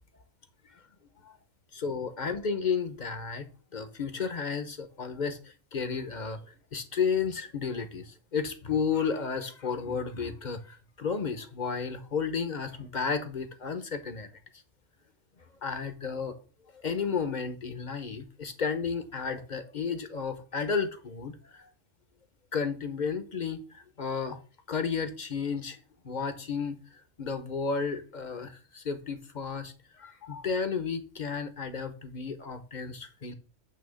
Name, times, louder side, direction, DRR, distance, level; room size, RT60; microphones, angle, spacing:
voice 1, 1.7-3.5 3.7-5.4 5.7-6.4 6.7-14.3 15.6-16.4 16.8-21.6 22.5-24.4 24.7-25.8 26.0-26.8 27.2-33.3, left 5 dB, 40° left, 0.9 m, -32 dB
9.0 x 3.0 x 6.3 m
omnidirectional pair, 1.3 m